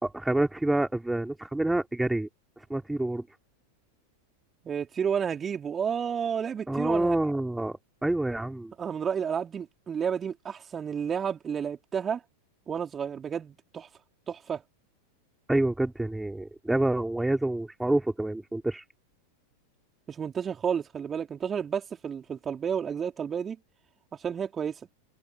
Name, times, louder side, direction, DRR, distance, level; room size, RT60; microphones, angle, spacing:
voice 1, 0.0-2.3 2.7-3.3 6.7-8.7 15.5-18.8, right 1 dB, 5° right, 3.7 m, -27 dB
voice 2, 4.6-7.2 8.8-12.2 12.7-13.9 14.3-14.6 20.1-23.6 24.1-24.8, right 7 dB, 20° right, 4.3 m, -31 dB
figure-of-eight pair, 90°, 0 cm